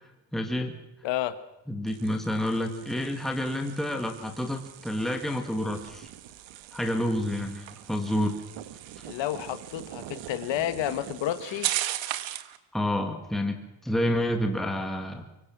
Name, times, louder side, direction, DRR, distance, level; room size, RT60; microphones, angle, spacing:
voice 1, 0.3-0.8 1.7-6.1 6.7-8.4 12.7-15.2, left 1 dB, ahead, 4 dB, 1.7 m, -29 dB
voice 2, 1.0-1.4 9.0-11.7, left 12 dB, 70° left, 11 dB, 1.7 m, -30 dB
sound 1, 1.9-12.6, right 13 dB, 75° right, 1.6 m, -38 dB
25.0 x 24.0 x 6.3 m, 0.95 s
cardioid pair, 165°, 46 cm